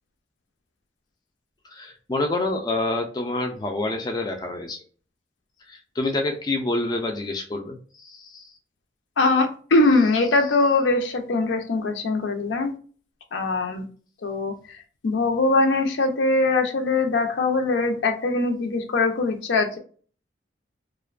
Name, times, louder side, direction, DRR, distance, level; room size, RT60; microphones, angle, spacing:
voice 1, 1.7-4.8 5.7-8.5, left 2 dB, 20° left, 3 dB, 0.3 m, -27 dB
voice 2, 9.2-12.7 13.3-13.8 14.2-19.8, left 3 dB, 80° left, 5 dB, 0.5 m, -22 dB
2.4 x 2.1 x 2.4 m, 0.42 s
head